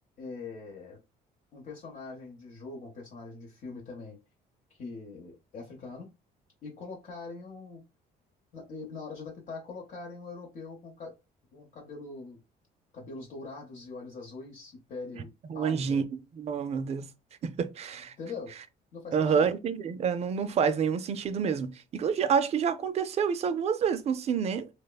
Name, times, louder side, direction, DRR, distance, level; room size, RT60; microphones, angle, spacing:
voice 1, 0.2-1.0 1.5-4.2 4.7-6.1 6.6-7.8 8.5-11.1 11.5-12.4 12.9-16.0 18.2-18.5 18.9-19.5, left 3 dB, 50° left, 0.8 m, -42 dB
voice 2, 15.4-16.0 16.4-17.1 17.4-18.1 19.1-24.7, right 6 dB, 40° right, 0.4 m, -28 dB
3.1 x 2.1 x 2.3 m
cardioid pair, 110°, 17 cm